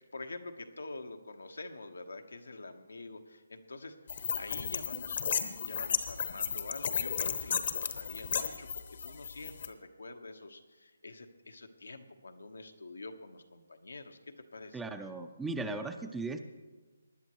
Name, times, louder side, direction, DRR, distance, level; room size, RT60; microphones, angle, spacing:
voice 1, 0.1-4.0 4.4-14.8, left 3 dB, 90° left, 6 dB, 1.2 m, -46 dB
sound 1, 4.1-9.7, left 7 dB, 50° left, 0.9 m, -34 dB
voice 2, 14.7-16.4, right 3 dB, 5° right, 8 dB, 0.5 m, -37 dB
19.5 x 10.5 x 3.1 m, 1.3 s
hypercardioid pair, 160°, 0 cm